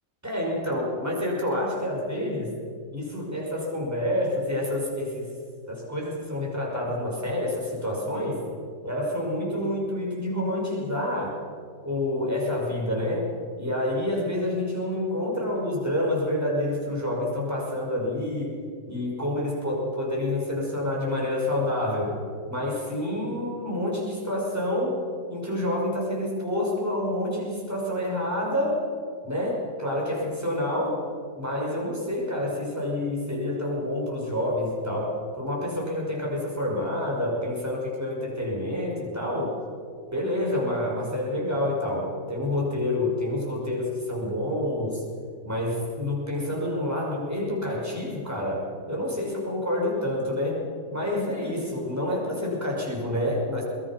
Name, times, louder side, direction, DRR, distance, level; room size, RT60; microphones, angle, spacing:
voice 1, 0.2-2.5 2.9-5.3 5.7-8.4 8.8-11.4 11.8-13.3 13.6-18.6 18.9-22.2 22.5-25.0 25.3-28.9 29.2-31.0 31.4-39.6 40.1-45.0 45.4-50.7 50.9-53.7, left 1 dB, 10° right, -3 dB, 5.6 m, -28 dB
22.0 x 21.5 x 5.9 m, 2.2 s
omnidirectional pair, 1.7 m